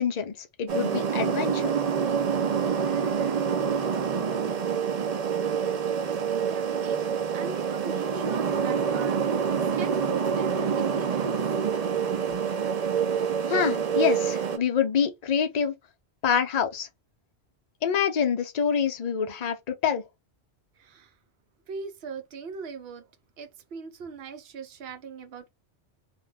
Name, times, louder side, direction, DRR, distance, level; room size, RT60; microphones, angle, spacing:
voice 1, 0.0-1.8 13.5-15.7 16.2-16.9 17.8-20.0, left 7 dB, 45° left, 0.6 m, -26 dB
sound 1, 0.7-14.6, right 7 dB, 50° right, 0.5 m, -26 dB
voice 2, 6.5-9.5 9.7-11.3 12.1-12.4 20.8-21.1 21.7-23.1 23.4-25.5, right 6 dB, 70° right, 0.9 m, -40 dB
2.5 x 2.2 x 3.3 m
omnidirectional pair, 1.1 m